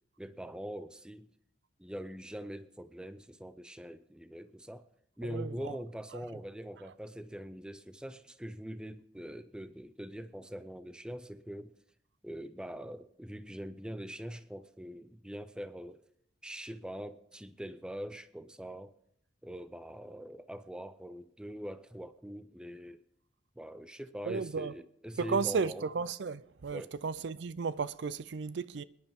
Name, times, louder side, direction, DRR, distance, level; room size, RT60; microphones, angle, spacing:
voice 1, 0.2-1.3 1.8-4.9 5.2-11.7 12.2-16.0 16.4-18.9 19.4-23.0 23.6-25.8 26.7-26.9, equal, 5° right, 0.4 m, -43 dB
voice 2, 5.2-5.7 24.3-24.7 25.2-28.8, right 5 dB, 60° right, 0.4 m, -34 dB
26.5 x 10.5 x 3.6 m
head